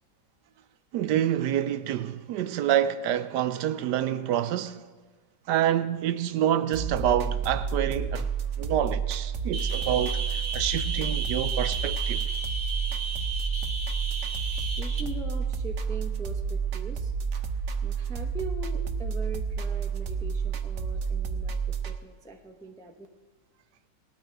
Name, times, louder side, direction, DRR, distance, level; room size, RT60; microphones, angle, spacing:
voice 1, 0.9-4.9 5.5-8.3 8.6-12.3, right 10 dB, 75° right, 1.1 m, -27 dB
sound 1, 6.7-22.0, right 6 dB, 55° right, 0.9 m, -30 dB
sound 2, 9.5-15.0, right 4 dB, 30° right, 1.3 m, -34 dB
voice 2, 14.6-17.1 17.8-23.1, right 2 dB, 5° left, 0.5 m, -41 dB
18.5 x 13.0 x 3.4 m
omnidirectional pair, 1.9 m